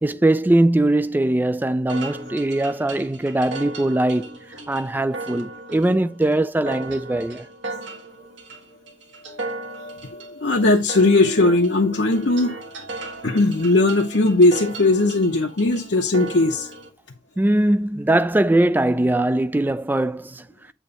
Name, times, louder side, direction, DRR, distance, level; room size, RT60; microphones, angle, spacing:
voice 1, 0.0-4.3 4.7-7.5 17.4-20.4, right 1 dB, 10° right, 0.3 m, -21 dB
sound 1, 1.9-16.9, right 2 dB, 75° right, 1.7 m, -37 dB
voice 2, 9.8-12.7 13.1-16.7, left 2 dB, 65° left, 0.8 m, -19 dB
8.4 x 3.0 x 5.3 m
head